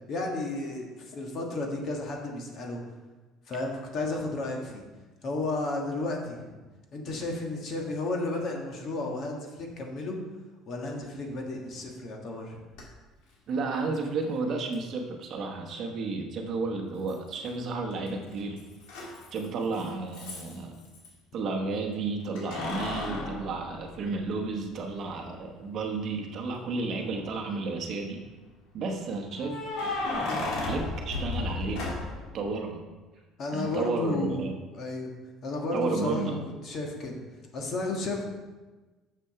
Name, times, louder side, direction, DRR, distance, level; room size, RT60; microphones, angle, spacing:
voice 1, 0.1-2.8 3.5-4.8 5.2-6.6 6.9-10.2 10.7-12.6 33.4-34.4 34.7-35.1 35.4-36.4 36.6-37.2 37.5-38.2, left 2 dB, 40° left, 1 dB, 1.4 m, -33 dB
Keys jangling, 12.7-12.8 14.7-14.8 17.1-17.6 17.9-21.1 22.4-24.5 25.0-25.1 26.8-27.4 29.3-32.3, left 3 dB, 80° left, 2.4 m, -34 dB
voice 2, 13.5-18.7 19.3-20.8 21.3-28.2 28.7-29.6 30.3-32.0 32.3-32.8 33.5-34.6 35.7-36.4, right 3 dB, 40° right, 3 dB, 1.0 m, -32 dB
6.9 x 6.8 x 5.7 m, 1.2 s
cardioid pair, 170°, 0 cm